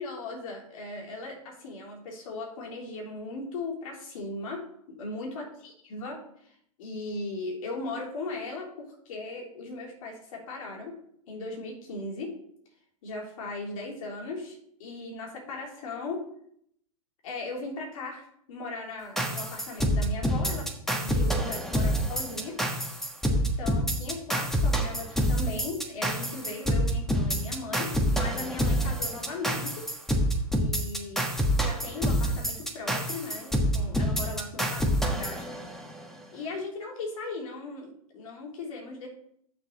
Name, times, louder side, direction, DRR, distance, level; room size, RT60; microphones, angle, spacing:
voice 1, 0.0-11.0 11.3-12.3 13.0-16.2 17.2-20.7 21.0-22.6 23.3-29.9 30.5-31.3 31.6-35.5 36.3-39.1, left 3 dB, 65° left, 0 dB, 3.5 m, -38 dB
sound 1, 19.2-36.0, equal, ahead, 1.4 m, -27 dB
9.7 x 6.6 x 4.0 m, 0.69 s
hypercardioid pair, 125°, 18 cm